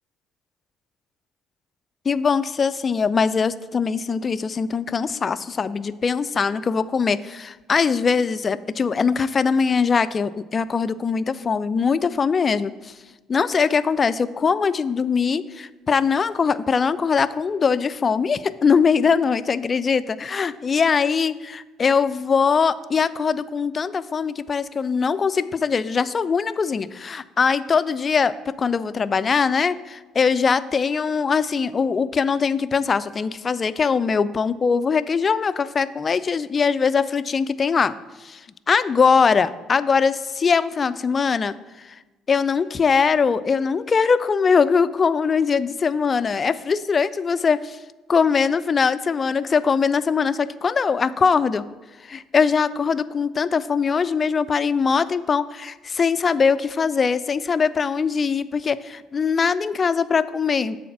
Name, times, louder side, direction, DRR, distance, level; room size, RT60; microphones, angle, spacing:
voice 1, 2.1-12.9 13.3-37.9 38.2-38.4 38.7-41.5 41.8-42.0 42.3-47.8 48.1-51.6 52.0-60.8, left 5 dB, 40° left, 15 dB, 0.3 m, -21 dB
6.9 x 4.1 x 5.9 m, 1.2 s
hypercardioid pair, 55°, 0 cm